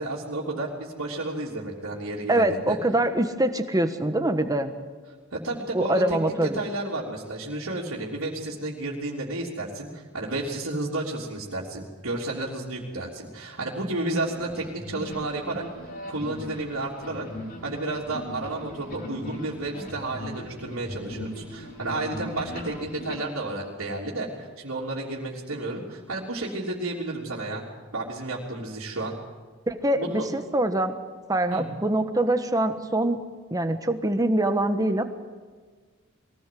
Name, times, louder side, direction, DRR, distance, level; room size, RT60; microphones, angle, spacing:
voice 1, 0.0-2.8 5.3-15.6 16.1-17.2 17.6-27.6 27.9-29.2 30.0-30.2 31.5-31.7, right 2 dB, 80° right, -6 dB, 3.3 m, -32 dB
voice 2, 2.3-4.7 5.7-6.6 29.7-30.9 31.3-33.2 33.5-35.0, right 1 dB, 15° right, 8 dB, 1.3 m, -24 dB
sound 1, 14.2-23.2, left 1 dB, 50° left, 5.1 m, -39 dB
22.0 x 17.0 x 7.7 m, 1.5 s
head